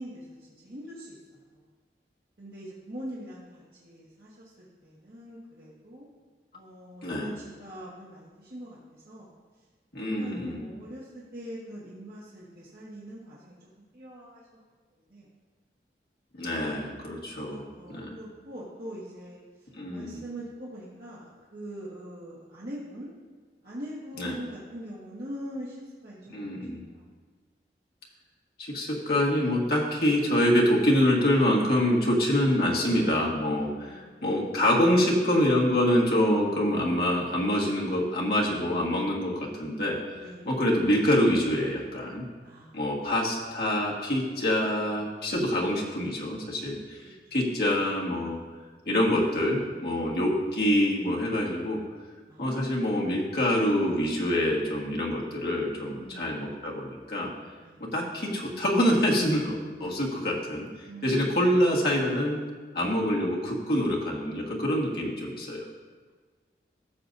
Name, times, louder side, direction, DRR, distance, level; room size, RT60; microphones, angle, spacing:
voice 1, 0.0-1.6 2.4-6.1 6.5-9.3 10.0-13.6 13.9-14.6 14.9-15.3 17.4-23.1 23.6-26.7 26.9-27.0 33.5-34.7 40.2-40.5 42.4-42.8 52.3-52.8 55.9-56.5 57.6-57.9 60.8-61.5, equal, 55° right, -8 dB, 1.4 m, -43 dB
voice 2, 9.9-10.7 16.3-17.6 17.9-18.2 19.7-20.2 24.2-24.3 26.3-26.9 28.6-40.0 40.4-42.2 42.7-48.4 48.9-51.8 52.4-57.3 57.9-62.4 62.7-65.6, equal, 60° left, -3 dB, 1.6 m, -26 dB
14.5 x 6.7 x 2.6 m, 1.4 s
head